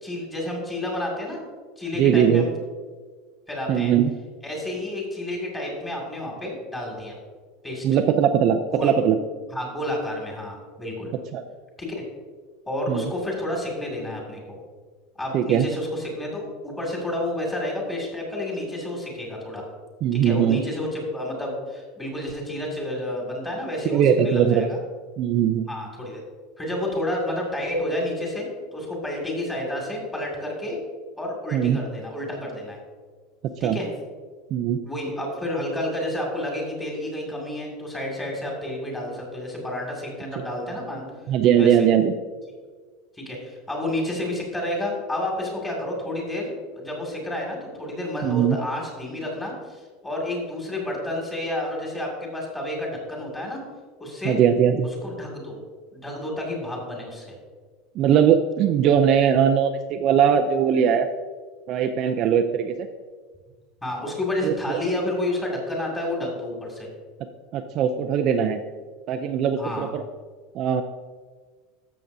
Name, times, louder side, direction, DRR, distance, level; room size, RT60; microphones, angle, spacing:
voice 1, 0.0-1.4 1.8-2.5 3.5-3.9 4.4-7.2 7.6-7.8 8.7-9.0 9.5-11.1 11.8-12.0 12.7-14.6 15.2-19.6 20.1-24.8 25.7-26.2 26.6-30.8 31.2-32.8 33.6-33.9 34.8-41.0 41.6-41.9 43.2-53.6 54.0-54.4 55.0-55.6 55.9-57.3 63.8-66.9 69.6-69.9, left 1 dB, 10° left, -2 dB, 2.2 m, -30 dB
voice 2, 2.0-2.5 3.7-4.1 7.8-9.2 11.3-11.4 12.9-13.1 15.3-15.7 20.0-20.6 23.9-24.7 25.2-25.7 31.5-31.8 33.6-33.8 34.5-34.8 41.3-42.1 48.2-48.6 54.2-54.9 58.0-61.1 61.7-62.9 64.4-64.8 67.5-68.6 69.1-70.0 70.5-70.8, right 8 dB, 35° right, 6 dB, 0.4 m, -20 dB
12.5 x 7.4 x 2.7 m, 1.5 s
supercardioid pair, 170°, 0 cm